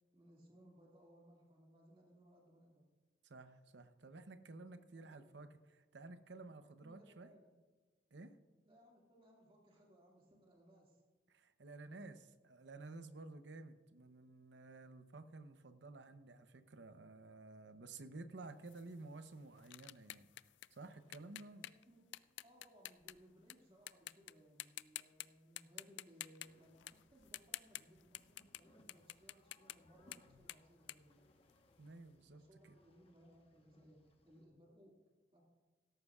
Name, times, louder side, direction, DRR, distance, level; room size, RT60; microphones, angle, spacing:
voice 1, 0.1-2.8 4.9-5.4 6.8-7.4 8.7-11.0 21.6-31.4 32.3-35.0 35.3-35.4, equal, 30° right, -3 dB, 2.1 m, -65 dB
voice 2, 3.2-7.3 8.1-8.4 11.3-20.3 20.7-21.7 31.8-32.8, right 3 dB, 80° right, 10 dB, 0.8 m, -53 dB
sound 1, 18.7-23.5 23.9-24.3 24.6-25.3 25.6-28.6 28.9-31.9, left 14 dB, 90° left, 0.3 m, -50 dB
sound 2, 26.4-34.4, left 1 dB, 30° left, 1.1 m, -71 dB
16.5 x 13.5 x 2.4 m, 1.3 s
head